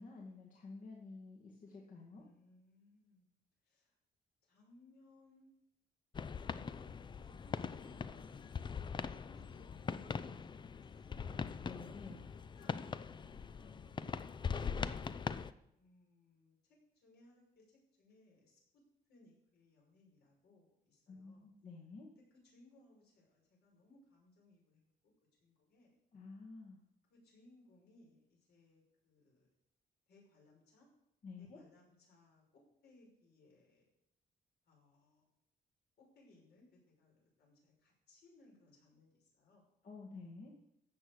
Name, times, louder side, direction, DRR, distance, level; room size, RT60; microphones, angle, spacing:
voice 1, 0.0-2.2 11.6-12.2 21.1-22.1 26.1-26.8 31.2-31.6 39.8-40.5, left 3 dB, 50° left, -2 dB, 2.2 m, -51 dB
voice 2, 2.1-3.3 3.6-4.0 4.4-5.5 6.2-8.5 9.0-11.7 12.3-14.2 14.8-18.8 19.1-21.5 22.1-24.8 25.4-25.9 27.1-29.5 30.1-30.9 31.4-33.8 34.6-35.2 36.0-39.7, left 2 dB, 70° left, -1 dB, 5.8 m, -66 dB
sound 1, 6.1-15.5, left 6 dB, 25° left, 0.5 m, -42 dB
15.0 x 6.3 x 8.0 m, 0.79 s
cardioid pair, 145°, 17 cm